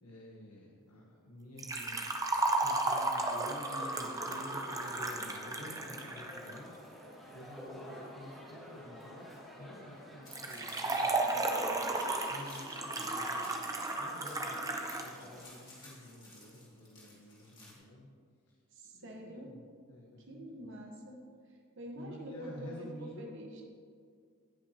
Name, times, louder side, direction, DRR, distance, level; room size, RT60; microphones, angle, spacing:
voice 1, 0.0-2.1 2.6-6.7 7.3-11.8 12.3-13.6 14.0-18.1 18.9-19.6 19.9-20.7 22.0-23.3, left 1 dB, 80° left, -2 dB, 1.0 m, -50 dB
Liquid, 1.6-6.6 10.3-15.1 15.4-15.5 16.4-16.5, right 2 dB, 15° right, 0.5 m, -34 dB
sound 1, 3.7-15.4, equal, ahead, 2.2 m, -50 dB
sound 2, 10.2-17.7, left 2 dB, 20° left, 2.2 m, -56 dB
voice 2, 11.2-12.0 18.7-19.5 20.3-23.6, right 1 dB, 55° right, 0 dB, 1.1 m, -47 dB
17.0 x 5.7 x 2.8 m, 2.1 s
head